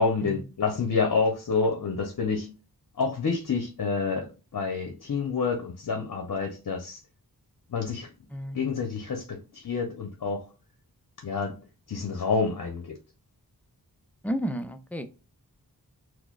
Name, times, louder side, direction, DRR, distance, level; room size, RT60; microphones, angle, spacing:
voice 1, 0.0-2.5 3.0-7.0 7.7-8.1 8.5-10.4 11.2-11.6 11.9-13.0, left 4 dB, 55° left, 2 dB, 0.7 m, -28 dB
voice 2, 8.3-8.7 14.2-15.1, equal, 5° left, 8 dB, 0.4 m, -32 dB
4.6 x 2.0 x 2.3 m, 0.31 s
wide cardioid pair, 60°, 38 cm